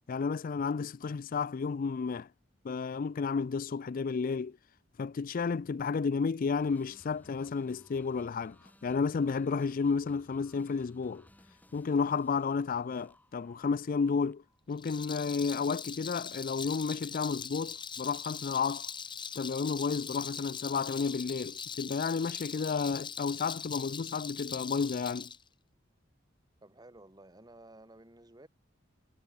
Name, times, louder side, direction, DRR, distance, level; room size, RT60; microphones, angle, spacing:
voice 1, 0.1-2.3 2.6-4.6 5.0-11.3 11.7-18.9 19.4-25.3, left 5 dB, 45° left, 0.4 m, -32 dB
sound 1, 6.6-14.6, left 1 dB, 10° left, 2.2 m, -61 dB
Rattle, 14.7-25.4, left 6 dB, 25° left, 1.4 m, -41 dB
voice 2, 26.6-28.5, right 1 dB, 20° right, 2.9 m, -54 dB
head